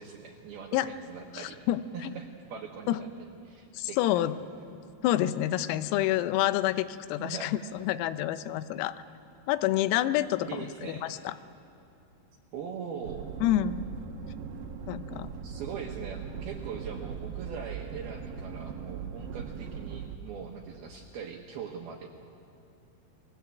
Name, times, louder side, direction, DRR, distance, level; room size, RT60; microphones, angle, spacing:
voice 1, 0.0-1.6 1.9-3.1 3.4-4.2 7.2-7.5 10.5-11.1 12.5-13.3 15.4-22.1, right 6 dB, 70° right, 1 dB, 2.4 m, -41 dB
voice 2, 1.3-2.1 2.9-3.0 3.7-4.4 5.0-9.0 9.5-11.3 13.4-13.8 14.9-15.3, left 13 dB, 90° left, 12 dB, 3.6 m, -28 dB
sound 1, 13.0-20.2, right 6 dB, 90° right, 1.9 m, -39 dB
29.0 x 20.5 x 8.2 m, 2.6 s
omnidirectional pair, 6.0 m